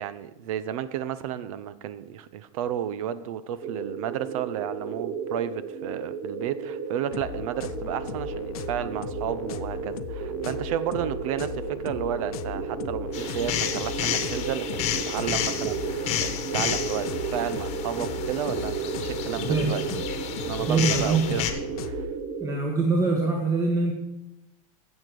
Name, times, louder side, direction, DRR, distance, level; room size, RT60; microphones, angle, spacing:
voice 1, 0.0-19.8 20.4-22.0, right 10 dB, 65° right, 0.8 m, -32 dB
sound 1, 3.6-22.6, right 6 dB, 40° right, 1.1 m, -34 dB
sound 2, 7.1-22.1, left 9 dB, 75° left, 0.6 m, -38 dB
sound 3, 13.1-21.5, left 9 dB, 35° left, 1.2 m, -31 dB
voice 2, 19.4-19.7 20.6-21.5 22.4-23.9, right 3 dB, 15° right, 1.3 m, -24 dB
9.7 x 7.3 x 6.7 m
supercardioid pair, 125°, 19 cm